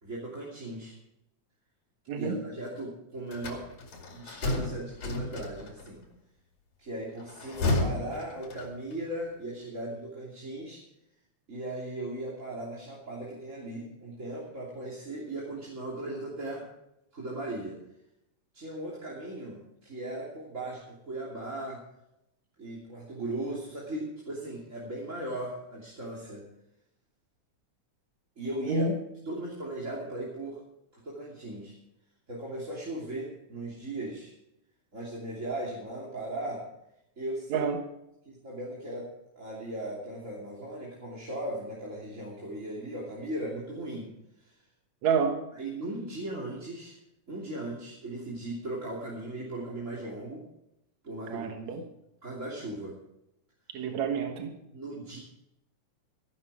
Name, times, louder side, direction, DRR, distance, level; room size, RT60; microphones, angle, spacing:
voice 1, 0.0-0.9 2.1-3.7 4.1-6.0 6.8-10.8 11.5-16.7 17.1-17.8 18.5-21.8 22.6-26.4 28.4-28.8 29.2-30.6 30.9-31.8 32.3-34.3 34.9-36.7 37.2-37.7 38.2-44.1 44.4-44.5 45.5-47.0 47.3-50.5 51.0-51.9 52.2-53.0 54.7-55.2, right 1 dB, 25° right, -5 dB, 3.1 m, -38 dB
voice 2, 2.1-2.4 28.7-28.9 37.5-37.8 45.0-45.4 51.3-51.8 53.7-54.6, right 5 dB, 70° right, 4 dB, 2.6 m, -28 dB
sound 1, 3.3-5.9 7.2-9.0, left 2 dB, 65° left, 3.8 m, -32 dB
16.0 x 11.5 x 4.8 m, 0.82 s
omnidirectional pair, 3.4 m